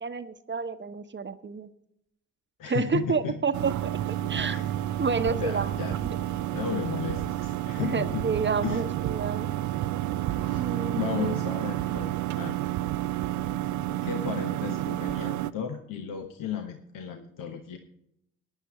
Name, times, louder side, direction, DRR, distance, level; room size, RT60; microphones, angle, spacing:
voice 1, 0.0-1.7 2.7-3.9 4.3-4.6 5.0-5.7 6.0-6.2 7.8-9.5 10.5-11.4, right 5 dB, 30° right, 11 dB, 1.0 m, -29 dB
voice 2, 2.6-3.5 4.2-4.7 5.1-6.0 6.5-8.3 8.6-8.8 10.4-10.7 11.0-12.6 14.0-17.8, left 8 dB, 65° left, 5 dB, 1.1 m, -35 dB
sound 1, 3.5-15.5, right 13 dB, 55° right, 0.6 m, -30 dB
17.0 x 10.0 x 3.1 m, 0.76 s
hypercardioid pair, 40°, 35 cm